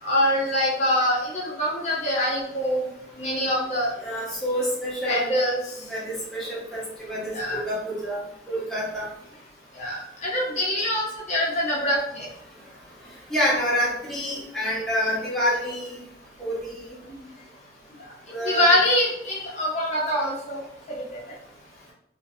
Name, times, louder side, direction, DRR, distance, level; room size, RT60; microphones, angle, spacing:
voice 1, 0.0-2.9 3.2-3.9 5.1-5.6 7.3-7.6 9.8-12.3 18.3-20.6 20.9-21.0, left 1 dB, 40° left, -4 dB, 0.5 m, -24 dB
voice 2, 4.0-5.3 5.9-8.2 8.5-9.1 13.3-16.0 16.4-17.0 18.3-18.8, equal, 5° left, -7 dB, 0.7 m, -27 dB
2.4 x 2.1 x 2.6 m, 0.73 s
head